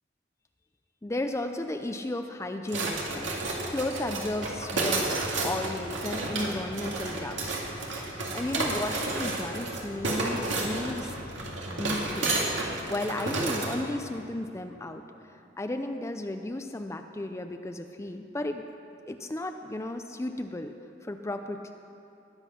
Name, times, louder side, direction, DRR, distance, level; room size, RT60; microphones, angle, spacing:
voice 1, 1.0-3.4 3.7-7.6 8.0-11.2 11.7-12.4 12.9-15.0 15.3-18.6 19.1-20.8 21.0-21.7, left 1 dB, 15° left, 6 dB, 0.4 m, -34 dB
sound 1, 2.7-13.8, right 2 dB, 90° right, 2.1 m, -31 dB
sound 2, 2.9-12.7, left 1 dB, 55° left, 1.4 m, -46 dB
20.5 x 8.1 x 5.7 m, 2.8 s
head